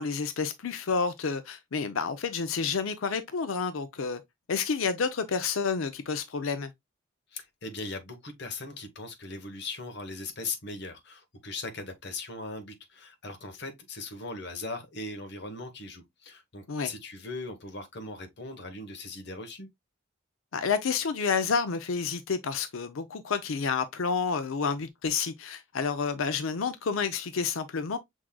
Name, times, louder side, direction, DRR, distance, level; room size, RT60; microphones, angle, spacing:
voice 1, 0.0-4.2 4.5-6.7 16.7-16.9 20.5-28.0, left 5 dB, 80° left, 0.5 m, -29 dB
voice 2, 7.3-19.7, left 3 dB, 55° left, 1.1 m, -39 dB
6.2 x 3.6 x 2.2 m
head